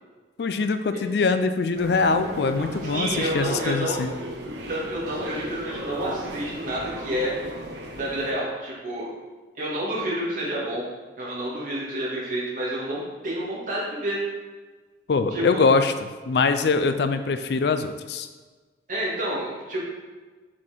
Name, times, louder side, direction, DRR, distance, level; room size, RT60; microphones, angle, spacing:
voice 1, 0.4-4.1 15.1-15.9 16.3-18.3, left 4 dB, 65° left, 9 dB, 0.4 m, -23 dB
sound 1, 1.7-8.3, right 1 dB, 75° right, 0.8 m, -36 dB
voice 2, 2.8-4.0 4.7-7.3 7.9-9.1 9.6-10.8 11.2-14.2 15.3-15.6 18.9-19.8, right 1 dB, 50° right, -6 dB, 2.1 m, -29 dB
6.1 x 4.2 x 4.5 m, 1.4 s
head